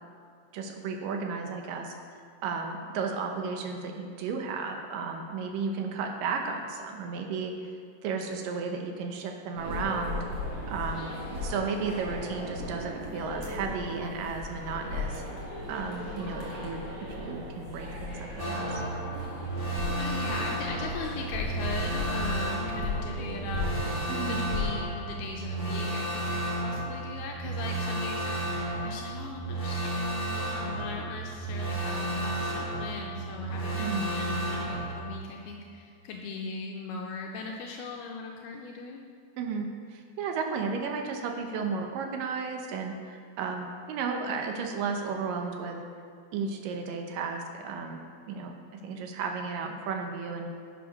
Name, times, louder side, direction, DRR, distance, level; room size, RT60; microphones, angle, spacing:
voice 1, 0.5-1.9 2.4-7.5 8.0-10.2 10.7-15.2 15.7-18.2 18.4-18.8 24.1-24.4 33.8-34.0 39.4-45.8 46.3-50.5, right 5 dB, 75° right, 3 dB, 2.1 m, -34 dB
sound 1, 9.5-24.6, left 1 dB, 40° right, 3.1 m, -36 dB
sound 2, 18.4-35.0, right 1 dB, 15° left, 0.6 m, -33 dB
voice 2, 20.0-39.1, left 4 dB, 80° left, 0 dB, 2.6 m, -39 dB
11.0 x 7.8 x 5.3 m, 2.3 s
omnidirectional pair, 4.7 m